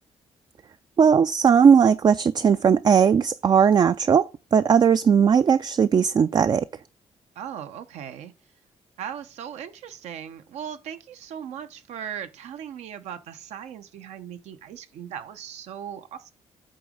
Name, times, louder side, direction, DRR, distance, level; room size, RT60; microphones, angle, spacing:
voice 1, 1.0-6.6, right 7 dB, 40° right, 0.3 m, -18 dB
voice 2, 7.4-8.3 9.0-16.3, right 9 dB, 85° right, 0.8 m, -38 dB
8.6 x 3.0 x 5.0 m
cardioid pair, 75°, 11 cm